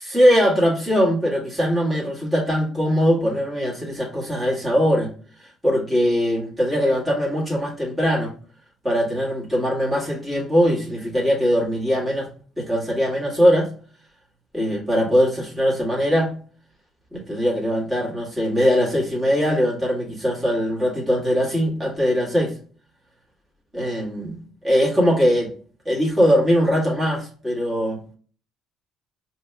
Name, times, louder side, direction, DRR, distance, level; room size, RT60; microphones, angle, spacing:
voice 1, 0.0-5.1 5.6-8.3 8.8-12.3 12.6-13.7 14.5-16.3 17.1-22.5 23.7-24.4 24.6-25.5 25.9-28.0, equal, 15° right, -3 dB, 2.0 m, -21 dB
5.2 x 3.0 x 2.2 m, 0.42 s
supercardioid pair, 70°, 0 cm